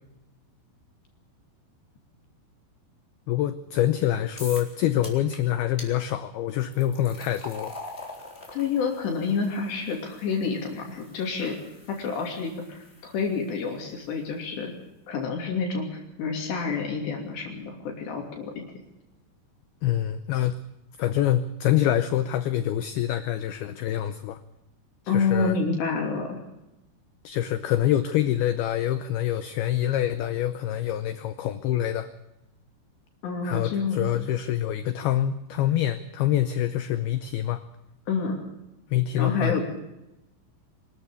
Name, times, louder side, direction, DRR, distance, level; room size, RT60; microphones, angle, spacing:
voice 1, 3.3-7.7 19.8-20.6 21.0-24.4 25.1-25.6 27.2-32.1 33.4-37.6 38.9-39.6, left 12 dB, 80° left, 12 dB, 2.2 m, -26 dB
sound 1, 4.4-4.7 5.0-5.4 5.8-5.9 6.6-13.7, left 2 dB, 15° left, 3.3 m, -44 dB
voice 2, 8.5-11.6 11.9-14.7 15.1-18.6 25.1-26.4 33.2-34.0 38.1-38.5 39.2-39.6, left 5 dB, 65° left, 1 dB, 4.8 m, -28 dB
24.5 x 13.5 x 8.3 m, 0.92 s
omnidirectional pair, 5.5 m